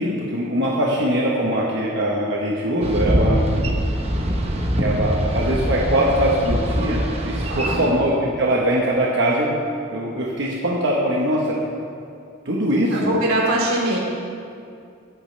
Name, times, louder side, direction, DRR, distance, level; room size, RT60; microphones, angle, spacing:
voice 1, 0.0-3.4 4.8-9.6 9.9-11.6 12.4-13.1, right 1 dB, 55° right, -4 dB, 1.2 m, -22 dB
Boat Water vehicle, 2.8-7.9, equal, 30° right, 1.0 m, -23 dB
voice 2, 7.5-7.9 12.9-14.0, right 1 dB, 85° right, -4 dB, 3.2 m, -22 dB
20.5 x 8.6 x 3.3 m, 2.4 s
head